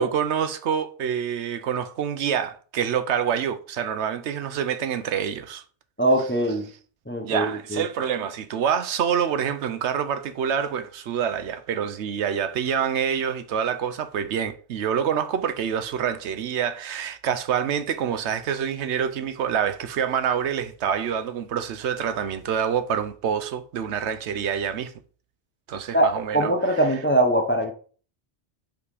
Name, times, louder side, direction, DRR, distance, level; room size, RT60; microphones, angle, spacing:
voice 1, 0.0-5.6 7.2-24.9 25.7-26.8, right 8 dB, 80° right, 1.0 m, -26 dB
voice 2, 6.0-6.7 7.1-7.8 25.9-27.7, right 1 dB, 10° left, 0.8 m, -22 dB
5.6 x 4.3 x 4.8 m
omnidirectional pair, 1.2 m